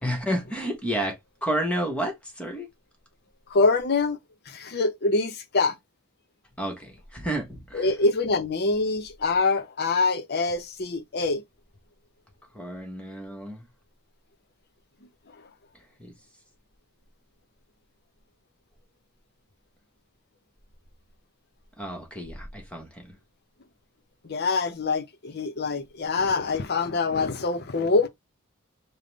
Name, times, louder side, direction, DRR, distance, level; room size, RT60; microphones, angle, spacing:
voice 1, 0.0-2.7 6.6-7.9 12.5-13.7 16.0-16.1 21.8-23.2, right 1 dB, 5° left, 1.0 m, -31 dB
voice 2, 3.5-4.2 4.5-5.7 7.7-11.4 24.2-28.1, left 3 dB, 50° left, 0.7 m, -25 dB
5.2 x 2.1 x 3.9 m
head